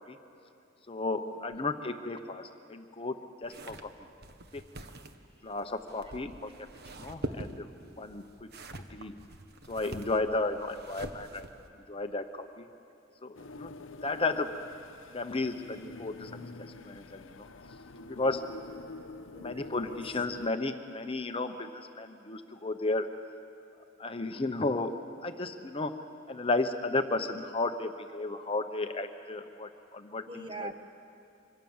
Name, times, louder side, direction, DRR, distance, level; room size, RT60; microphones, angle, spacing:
voice 1, 0.9-3.9 4.5-4.6 5.4-6.5 6.9-7.7 8.0-8.5 8.9-9.1 9.7-11.4 11.9-12.7 13.2-13.8 14.0-14.5 15.1-16.3 16.8-17.5 18.1-18.5 19.4-23.1 24.0-24.9 25.2-25.9 26.3-30.7, left 2 dB, 30° left, 7 dB, 0.9 m, -33 dB
sound 1, 3.4-11.7, right 1 dB, 55° right, 1.2 m, -44 dB
sound 2, 13.3-20.5, left 3 dB, 75° left, 0.9 m, -47 dB
voice 2, 19.3-20.0 30.3-30.7, right 2 dB, 25° right, 6 dB, 1.5 m, -44 dB
25.5 x 25.0 x 7.3 m, 2.6 s
head